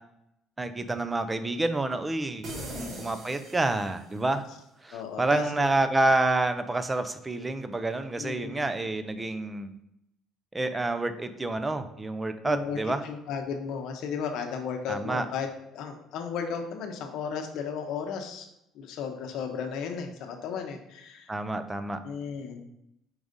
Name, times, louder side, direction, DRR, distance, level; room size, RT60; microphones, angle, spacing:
voice 1, 0.6-2.5 2.8-4.4 4.8-9.7 10.5-13.0 14.9-15.3 21.3-22.0, right 2 dB, 10° right, 10 dB, 0.4 m, -28 dB
sound 1, 2.4-4.3, right 2 dB, 35° right, 0.9 m, -40 dB
voice 2, 2.5-3.0 4.9-5.7 8.2-8.7 12.4-18.5 18.7-21.3 22.0-22.6, left 6 dB, 60° left, 4 dB, 0.8 m, -35 dB
4.7 x 3.9 x 5.1 m, 0.81 s
cardioid pair, 170°, 0 cm